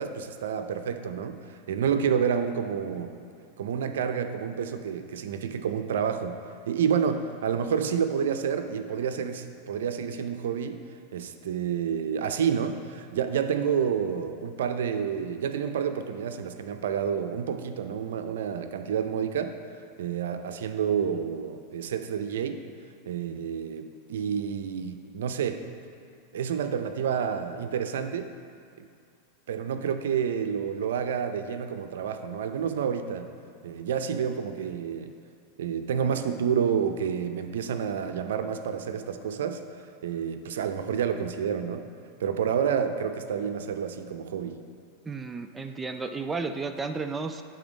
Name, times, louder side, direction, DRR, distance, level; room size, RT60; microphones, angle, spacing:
voice 1, 0.0-3.2 3.6-6.3 6.7-10.8 11.1-19.6 20.0-22.6 23.1-25.6 26.3-28.3 28.8-28.9 29.5-33.3 33.6-35.1 35.6-41.8 42.2-44.6, right 7 dB, 85° right, 8 dB, 0.5 m, -29 dB
voice 2, 45.1-47.4, right 4 dB, 15° right, 7 dB, 0.4 m, -33 dB
9.8 x 3.9 x 5.1 m, 2.3 s
supercardioid pair, 125°, 0 cm